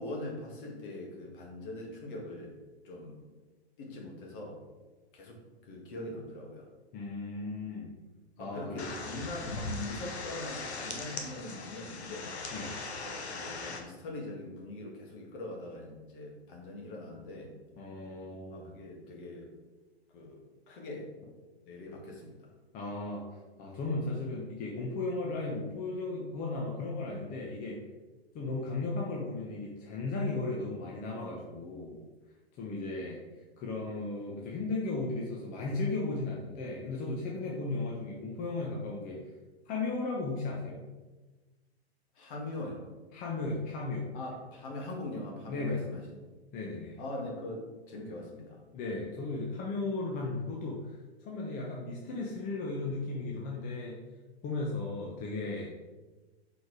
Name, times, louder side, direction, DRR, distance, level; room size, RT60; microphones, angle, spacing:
voice 1, 0.0-2.6 2.8-3.2 3.8-4.6 5.1-6.7 8.4-12.3 13.0-17.5 18.5-19.5 20.1-20.4 20.7-21.1 21.6-22.5 42.2-42.8 44.1-46.0 47.0-48.6, left 1 dB, 50° left, 0 dB, 2.0 m, -42 dB
voice 2, 6.9-7.9 8.4-8.9 12.5-12.8 17.8-18.7 22.7-23.3 23.6-27.8 28.3-32.0 32.6-33.2 33.6-39.3 39.7-40.8 43.1-44.1 45.5-45.8 46.5-47.0 48.7-54.0 54.4-55.7, left 3 dB, 25° left, -2 dB, 0.9 m, -35 dB
sound 1, 8.8-13.8, left 3 dB, 85° left, 1.1 m, -39 dB
5.1 x 4.1 x 4.8 m, 1.2 s
hypercardioid pair, 125°, 33 cm